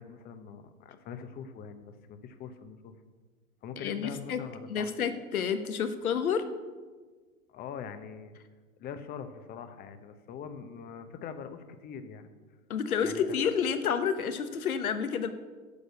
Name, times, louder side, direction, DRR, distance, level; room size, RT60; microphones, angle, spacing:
voice 1, 0.0-3.0 3.6-4.9 7.5-8.3 8.8-12.3 13.0-13.5, left 7 dB, 20° left, 10 dB, 0.8 m, -43 dB
voice 2, 3.8-4.4 4.7-6.4 12.7-15.3, left 7 dB, 75° left, 10 dB, 1.3 m, -29 dB
10.0 x 6.5 x 8.0 m, 1.4 s
hypercardioid pair, 115°, 44 cm